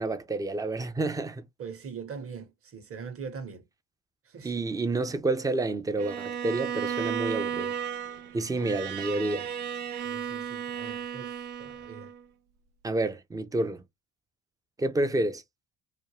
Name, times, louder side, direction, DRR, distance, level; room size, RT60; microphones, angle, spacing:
voice 1, 0.0-1.4 4.4-7.7 8.3-9.5 12.8-13.8 14.8-15.4, right 2 dB, 10° right, 0.4 m, -29 dB
voice 2, 1.6-3.6 4.2-4.5 8.6-8.7 10.0-12.1, right 6 dB, 35° right, 1.0 m, -42 dB
Bowed string instrument, 6.0-12.2, right 8 dB, 80° right, 0.6 m, -34 dB
2.5 x 2.2 x 3.0 m
hypercardioid pair, 70°, 41 cm